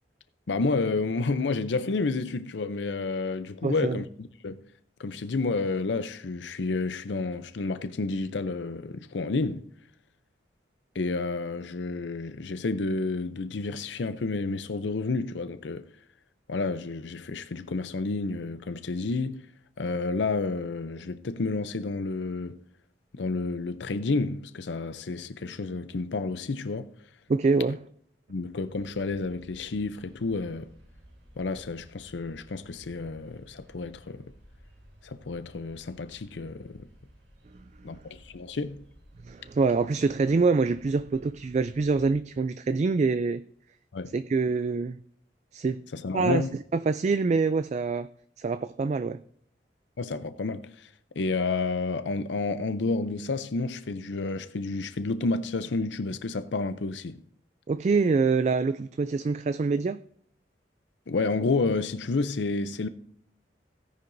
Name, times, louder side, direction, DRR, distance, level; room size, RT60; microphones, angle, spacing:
voice 1, 0.5-4.6 5.0-9.7 10.9-15.9 16.5-19.5 19.8-22.6 23.1-26.9 28.3-30.7 31.4-34.3 35.0-36.9 37.8-38.8 43.9-44.1 45.9-46.5 50.0-50.9 51.1-57.2 61.1-62.9, left 3 dB, 90° left, 0.6 m, -30 dB
voice 2, 3.6-4.0 27.3-27.8 39.2-43.4 44.1-45.0 45.5-45.8 46.1-46.4 46.7-48.1 48.4-49.2 57.7-60.0, right 4 dB, 40° right, 0.3 m, -25 dB
sound 1, 28.7-42.2, equal, 85° right, 4.4 m, -55 dB
17.0 x 10.0 x 2.6 m
head